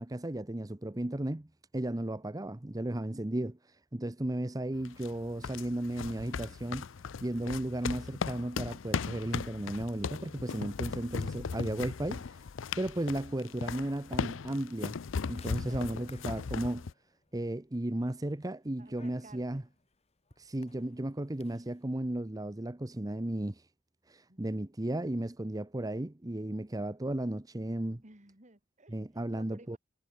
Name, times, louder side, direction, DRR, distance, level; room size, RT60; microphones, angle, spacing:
voice 1, 0.0-1.5 1.7-3.6 3.9-6.9 7.2-12.4 12.8-15.0 15.3-16.9 17.3-19.6 20.4-23.6 24.1-28.0 28.9-29.8, right 1 dB, 20° right, 0.8 m, -34 dB
sound 1, 4.7-16.9, left 5 dB, 80° left, 0.5 m, -38 dB
sound 2, 15.4-21.8, left 3 dB, 35° left, 2.7 m, -61 dB
voice 2, 15.6-16.0 18.8-19.6 24.3-24.5 28.0-29.0 29.3-29.8, right 2 dB, 40° right, 3.6 m, -56 dB
head